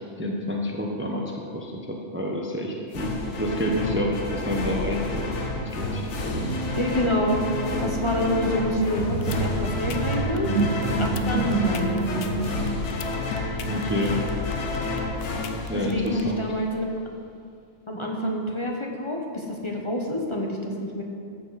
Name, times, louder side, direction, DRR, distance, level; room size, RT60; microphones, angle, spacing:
voice 1, 0.2-6.6 11.1-11.5 13.6-14.2 15.7-16.4, equal, 10° right, 0 dB, 0.8 m, -29 dB
sound 1, 2.9-16.6, left 3 dB, 85° left, 1.3 m, -30 dB
sound 2, 6.4-12.8, right 5 dB, 85° right, 0.9 m, -30 dB
voice 2, 6.7-7.4 7.8-10.5 10.9-12.3 15.7-16.9 17.9-21.0, left 1 dB, 25° left, -1 dB, 1.1 m, -27 dB
sound 3, 9.2-16.2, left 8 dB, 65° left, 0.8 m, -40 dB
13.5 x 7.5 x 4.1 m, 2.4 s
omnidirectional pair, 1.2 m